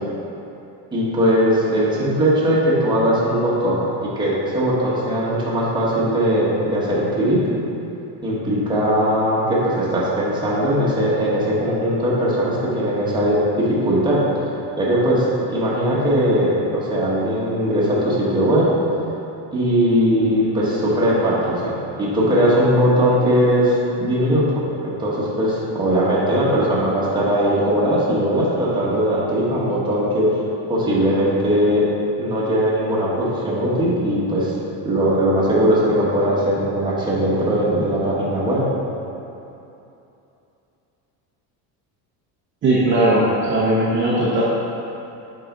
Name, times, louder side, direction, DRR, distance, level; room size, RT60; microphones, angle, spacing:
voice 1, 0.9-7.4 8.2-14.2 14.8-18.7 19.5-24.4 24.8-30.3 30.7-31.8 32.2-34.5 34.8-38.6, equal, 10° right, -7 dB, 1.3 m, -19 dB
voice 2, 42.6-44.4, right 1 dB, 25° right, -8 dB, 0.9 m, -18 dB
7.6 x 4.9 x 3.9 m, 2.8 s
cardioid pair, 155°, 42 cm